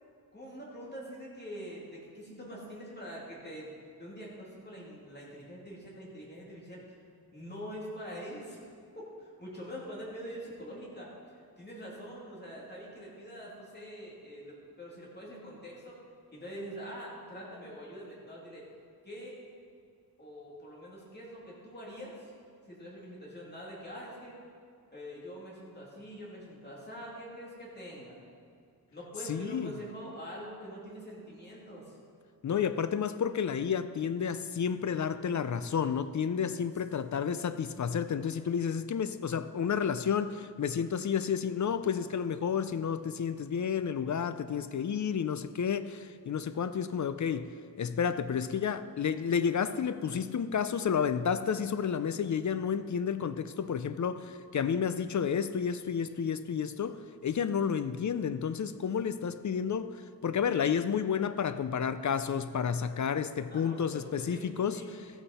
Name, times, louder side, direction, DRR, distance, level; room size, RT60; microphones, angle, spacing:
voice 1, 0.3-3.7 4.0-6.8 7.3-8.6 9.0-11.1 11.6-16.0 16.3-18.7 19.0-19.4 20.2-22.3 22.7-24.4 24.9-28.2 28.9-32.0 63.5-64.9, equal, 25° left, 2.9 m, -44 dB
voice 2, 29.3-29.7 32.4-47.5 47.8-64.8, left 7 dB, 50° left, 0.4 m, -31 dB
14.5 x 8.0 x 4.2 m
wide cardioid pair, 120°, 38 cm